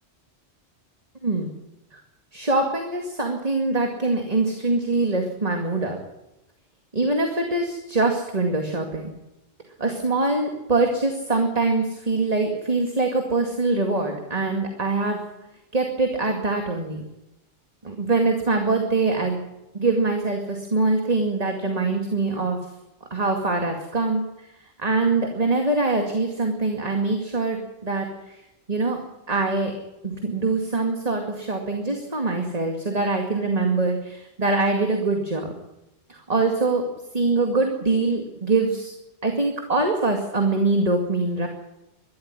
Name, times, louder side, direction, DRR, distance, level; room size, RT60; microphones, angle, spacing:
voice 1, 1.2-1.5 1.9-2.0 2.3-6.0 6.9-9.1 9.8-15.2 15.7-17.1 17.8-19.4 19.7-22.6 23.1-24.2 24.8-28.4 28.7-29.0 29.3-29.7 30.0-35.5 36.1-36.8 37.1-38.9 39.2-41.5, right 3 dB, 35° right, 3 dB, 2.3 m, -23 dB
21.5 x 13.5 x 9.7 m, 0.94 s
omnidirectional pair, 1.2 m